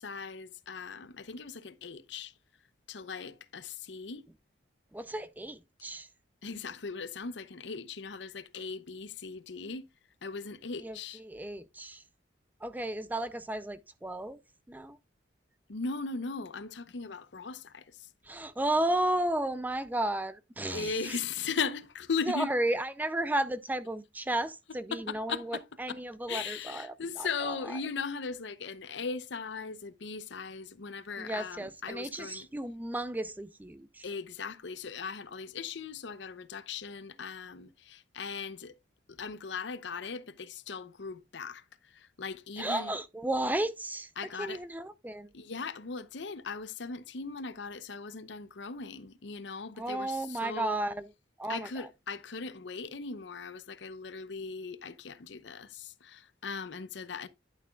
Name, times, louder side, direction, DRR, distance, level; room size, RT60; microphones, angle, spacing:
voice 1, 0.0-2.3 2.9-4.2 6.4-9.9 10.2-11.2 15.7-17.8 20.7-22.5 24.9-25.6 26.3-32.5 34.0-38.8 39.1-41.6 41.9-42.9 44.2-44.6 45.3-50.8 51.5-57.3, left 5 dB, 65° left, 0.7 m, -38 dB
voice 2, 4.9-6.1 10.8-12.0 12.6-14.4 14.7-15.0 18.2-21.2 22.3-27.8 31.2-34.1 42.6-45.3 49.8-51.1 51.4-51.9, right 1 dB, 10° right, 0.4 m, -33 dB
11.0 x 6.8 x 2.3 m
head